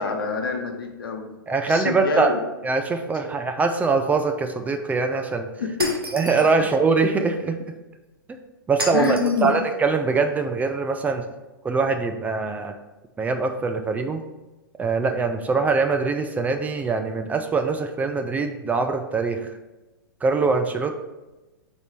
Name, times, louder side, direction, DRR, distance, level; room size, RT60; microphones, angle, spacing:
voice 1, 0.0-1.4 1.7-2.4 5.6-6.7 8.9-9.5, left 4 dB, 75° left, 4 dB, 1.0 m, -26 dB
voice 2, 1.5-2.3 2.6-5.5 6.1-7.6 8.7-11.2 11.6-12.7 13.2-14.2 14.8-19.5 20.2-20.9, right 4 dB, 15° right, 5 dB, 0.4 m, -23 dB
Shatter, 5.8-6.6 8.8-9.5, right 1 dB, 85° right, 1.2 m, -32 dB
4.5 x 4.0 x 5.1 m, 1.1 s
hypercardioid pair, 115°, 12 cm